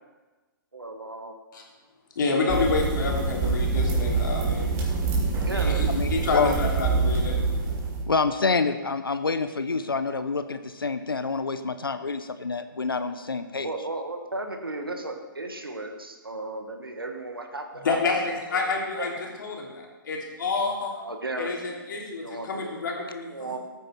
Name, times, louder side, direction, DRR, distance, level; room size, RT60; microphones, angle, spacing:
voice 1, 0.7-1.4 5.5-5.9 6.6-6.7 13.6-18.0 18.3-18.7 19.0-19.1 20.9-21.8 22.2-23.6, right 2 dB, 85° right, 5 dB, 1.8 m, -35 dB
voice 2, 2.1-4.7 5.5-7.4 17.8-19.1 19.4-20.9 21.4-23.5, left 4 dB, 60° left, -1 dB, 3.2 m, -28 dB
sound 1, 2.5-8.0, right 4 dB, 25° right, 3.1 m, -25 dB
voice 3, 5.9-6.6 8.1-13.7, left 4 dB, 85° left, 10 dB, 0.8 m, -27 dB
14.5 x 9.1 x 4.6 m, 1.2 s
figure-of-eight pair, 120°, 12 cm